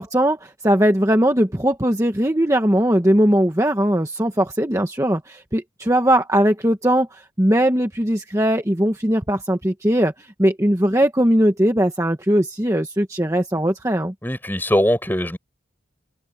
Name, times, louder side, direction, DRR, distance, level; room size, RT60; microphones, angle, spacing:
voice 1, 0.0-14.1, equal, 15° right, 1.2 m, -19 dB
voice 2, 14.2-15.4, equal, 10° left, 7.5 m, -21 dB
open air
head